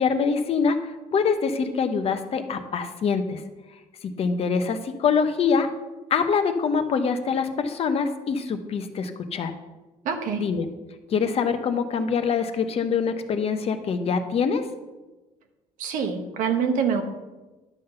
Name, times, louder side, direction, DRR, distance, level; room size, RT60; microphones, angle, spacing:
voice 1, 0.0-3.4 4.0-5.7 6.1-9.5 10.4-10.7 11.1-14.6, left 5 dB, 50° left, 8 dB, 0.9 m, -24 dB
voice 2, 10.0-10.4 15.8-17.0, right 6 dB, 80° right, 5 dB, 1.3 m, -25 dB
11.5 x 3.9 x 6.7 m, 1.2 s
cardioid pair, 110°, 13 cm